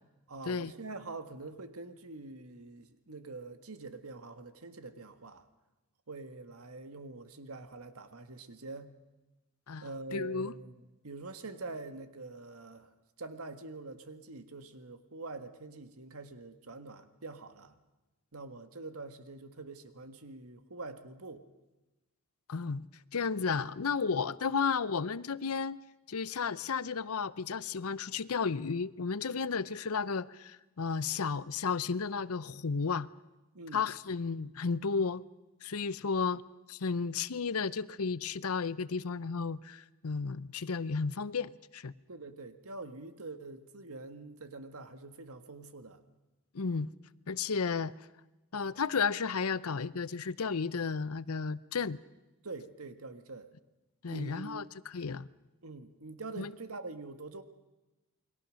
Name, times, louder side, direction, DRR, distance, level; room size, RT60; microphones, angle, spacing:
voice 1, 0.3-5.5 6.1-8.9 9.8-17.8 18.3-21.5 33.5-33.9 42.1-46.0 52.4-53.5 54.1-54.7 55.6-57.4, right 3 dB, 80° right, 1.7 m, -45 dB
voice 2, 10.1-10.5 22.5-22.9 23.1-25.8 26.1-33.1 33.7-35.2 35.6-36.4 36.7-41.9 46.5-46.9 47.3-47.9 48.5-52.0 54.0-55.3 56.4-56.5, left 5 dB, 85° left, 0.7 m, -33 dB
28.5 x 22.0 x 6.4 m
head